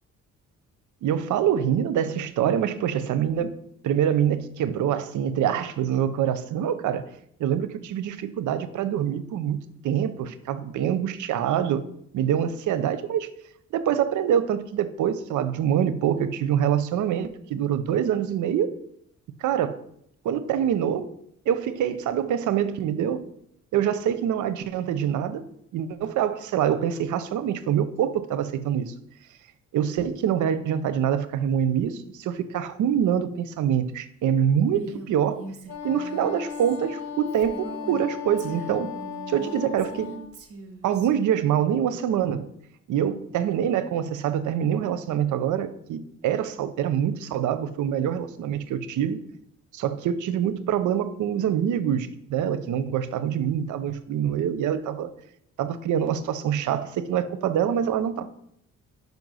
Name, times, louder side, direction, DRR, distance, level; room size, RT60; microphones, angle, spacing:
voice 1, 1.0-3.6 3.8-7.0 7.4-11.8 12.1-13.3 13.7-18.7 19.4-19.8 20.2-21.1 21.5-23.2 23.7-25.4 25.7-28.9 29.7-35.4 35.8-38.9 39.3-40.2 40.8-42.5 42.9-49.2 49.7-55.1 55.6-58.3, right 9 dB, 75° right, 0.7 m, -25 dB
Female speech woman speaking, 34.6-38.1 38.4-41.1, right 3 dB, 50° right, 1.3 m, -42 dB
Wind instrument woodwind instrument, 35.7-40.3, left 7 dB, 60° left, 1.2 m, -36 dB
5.5 x 5.3 x 6.2 m
cardioid pair, 90°, 30 cm